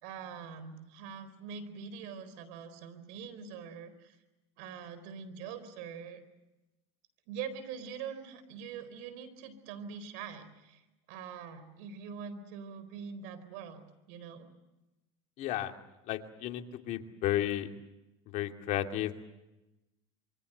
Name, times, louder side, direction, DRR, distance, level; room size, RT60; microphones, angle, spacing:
voice 1, 0.0-4.2 4.6-6.2 7.3-10.8 11.1-14.5, right 6 dB, 70° right, 12 dB, 4.4 m, -44 dB
voice 2, 15.4-15.7 16.1-17.7 18.3-19.2, left 12 dB, 55° left, 5 dB, 2.5 m, -33 dB
26.5 x 24.0 x 7.9 m, 0.99 s
supercardioid pair, 105°, 15 cm